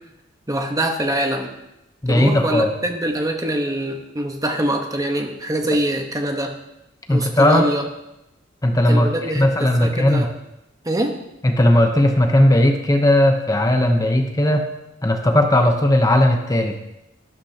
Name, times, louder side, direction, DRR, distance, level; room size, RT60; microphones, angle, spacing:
voice 1, 0.5-1.5 2.1-6.6 7.1-7.8 8.8-10.3 10.8-11.2, right 1 dB, 20° right, 4 dB, 1.1 m, -24 dB
voice 2, 2.0-2.7 7.1-7.7 8.6-10.3 11.4-14.6 15.0-16.7, left 1 dB, 20° left, 4 dB, 0.8 m, -17 dB
12.0 x 11.5 x 2.9 m, 0.91 s
head